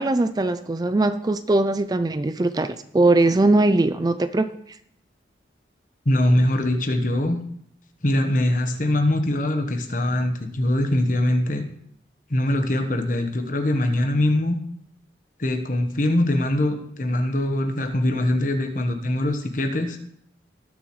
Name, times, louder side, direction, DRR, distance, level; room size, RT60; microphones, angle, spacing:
voice 1, 0.0-4.5, right 2 dB, 20° right, 10 dB, 0.4 m, -20 dB
voice 2, 6.0-7.4 8.0-11.7 12.3-14.6 15.4-20.0, left 1 dB, 45° left, 6 dB, 1.2 m, -22 dB
19.0 x 7.0 x 3.2 m, 0.68 s
head